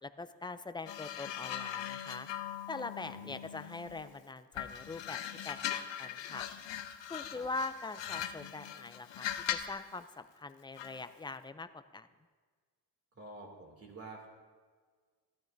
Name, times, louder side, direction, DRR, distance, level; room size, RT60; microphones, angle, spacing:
voice 1, 0.0-2.3 2.7-6.5 7.1-12.1, left 3 dB, 10° left, 10 dB, 0.3 m, -43 dB
sound 1, 0.9-4.1 4.5-9.8 10.8-11.0, left 10 dB, 90° left, 0.8 m, -40 dB
voice 2, 3.0-3.6 7.2-7.5 13.1-14.3, right 3 dB, 35° right, 0 dB, 2.6 m, -50 dB
15.5 x 12.5 x 2.6 m, 1.6 s
cardioid pair, 115°, 43 cm